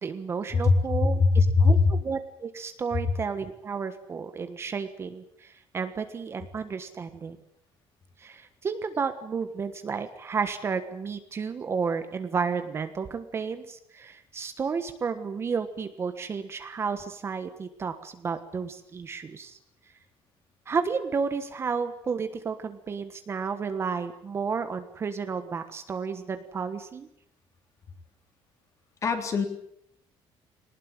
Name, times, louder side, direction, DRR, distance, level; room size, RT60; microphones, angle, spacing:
voice 1, 0.0-7.4 8.2-19.6 20.7-27.1, right 5 dB, 25° right, 9 dB, 1.4 m, -32 dB
voice 2, 0.5-1.8 29.0-29.5, left 4 dB, 35° left, 6 dB, 3.6 m, -21 dB
22.0 x 19.5 x 9.0 m, 0.71 s
cardioid pair, 170°, 9 cm